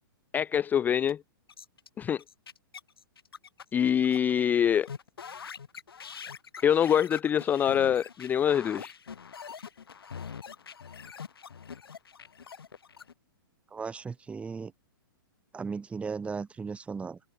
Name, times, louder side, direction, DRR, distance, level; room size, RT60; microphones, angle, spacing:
voice 1, 0.3-1.2 2.0-2.2 3.7-4.9 6.6-8.9, left 9 dB, 15° left, 0.4 m, -25 dB
sound 1, 1.1-1.2 1.5-1.9 2.2-4.4 4.7-13.1, left 6 dB, 85° left, 5.4 m, -44 dB
voice 2, 13.7-14.7 15.5-17.2, right 5 dB, 10° right, 1.0 m, -36 dB
open air
hypercardioid pair, 135°, 12 cm